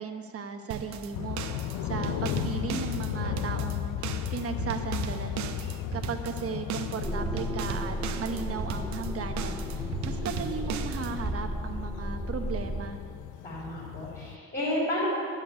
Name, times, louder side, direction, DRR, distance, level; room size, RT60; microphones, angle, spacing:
voice 1, 0.0-1.4 1.8-5.6 5.9-13.0, right 5 dB, 50° right, 6 dB, 1.1 m, -36 dB
sound 1, 0.7-11.4, right 9 dB, 70° right, 0.7 m, -37 dB
sound 2, 1.1-14.4, left 11 dB, 85° left, 0.5 m, -35 dB
sound 3, 7.0-12.9, equal, ahead, 0.3 m, -35 dB
voice 2, 13.4-15.1, left 1 dB, 30° left, -8 dB, 3.5 m, -31 dB
10.5 x 7.5 x 8.6 m, 2.3 s
cardioid pair, 90°, 30 cm